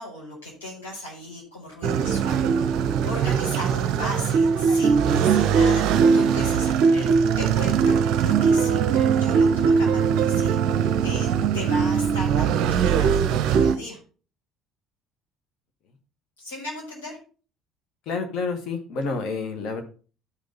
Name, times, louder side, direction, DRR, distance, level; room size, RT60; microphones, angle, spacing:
voice 1, 0.0-2.7 3.0-14.0 16.4-17.2, left 1 dB, 75° left, -3 dB, 4.8 m, -37 dB
sound 1, 1.8-13.8, right 6 dB, 55° right, 0.6 m, -21 dB
voice 2, 18.0-19.8, left 4 dB, 55° left, 5 dB, 1.7 m, -29 dB
12.0 x 5.2 x 4.0 m, 0.37 s
figure-of-eight pair, 55°, 0 cm